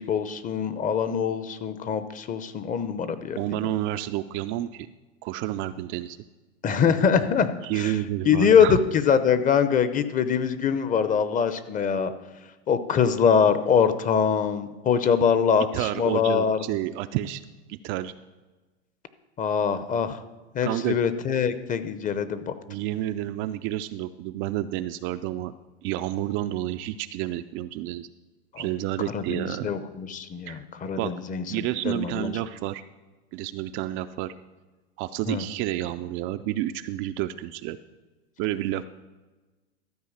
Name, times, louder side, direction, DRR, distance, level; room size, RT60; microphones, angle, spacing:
voice 1, 0.0-3.6 6.6-8.0 8.2-12.1 12.7-16.6 19.4-20.2 20.5-22.5 28.5-28.6 29.1-32.3 35.3-35.4, left 7 dB, 25° left, 12 dB, 0.7 m, -23 dB
voice 2, 3.4-4.9 5.2-6.2 7.6-8.8 15.7-17.4 17.7-18.1 20.6-21.0 22.7-25.5 25.8-28.1 28.6-29.7 30.5-30.6 31.0-31.1 31.5-32.8 33.3-34.3 35.0-37.8 38.4-38.8, right 14 dB, 40° right, 10 dB, 0.4 m, -30 dB
13.5 x 4.7 x 7.2 m, 1.2 s
hypercardioid pair, 120°, 33 cm